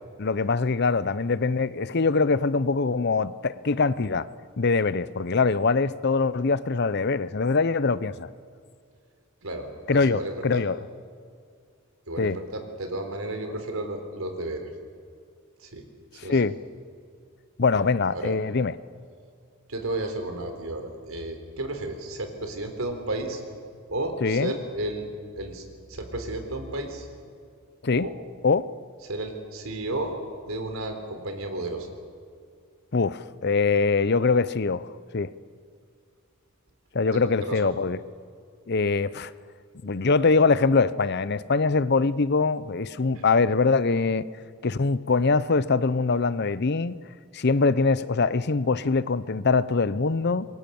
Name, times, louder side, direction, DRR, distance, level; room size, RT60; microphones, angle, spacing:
voice 1, 0.2-4.3 4.6-8.3 9.9-10.8 12.2-12.4 16.2-16.6 17.6-18.7 24.2-24.5 27.8-28.1 28.4-28.6 32.9-35.3 36.9-38.0 38.7-39.3 39.8-44.2 44.6-47.0 47.3-50.5, left 4 dB, 50° left, 17 dB, 0.7 m, -23 dB
voice 2, 9.4-10.6 12.1-14.7 15.6-15.9 16.1-16.4 18.1-18.3 19.7-23.4 23.9-27.1 28.0-28.1 29.0-30.1 30.5-31.9 37.1-37.8 43.1-43.3, right 2 dB, 80° right, 6 dB, 3.8 m, -33 dB
27.5 x 22.5 x 7.1 m, 2.3 s
head